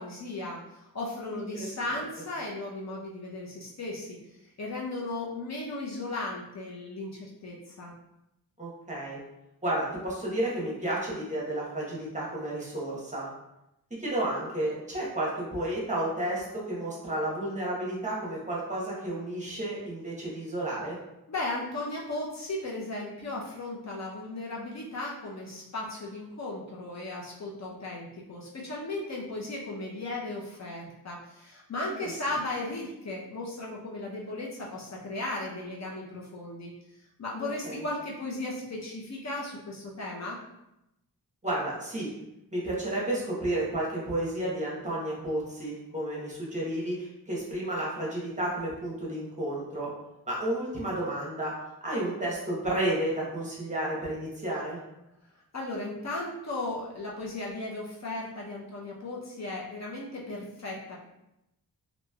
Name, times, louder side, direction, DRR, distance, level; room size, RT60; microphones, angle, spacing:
voice 1, 0.0-4.2 4.4-7.9 21.3-36.7 37.2-40.4 55.5-61.0, left 2 dB, 45° left, -3 dB, 0.6 m, -36 dB
voice 2, 1.3-1.9 8.6-9.2 9.6-13.3 14.0-21.0 37.4-37.9 41.4-42.1 42.5-49.9 50.3-51.5 51.8-54.8, right 1 dB, 20° right, -5 dB, 1.0 m, -32 dB
3.1 x 2.6 x 2.3 m, 0.88 s
wide cardioid pair, 95°, 37 cm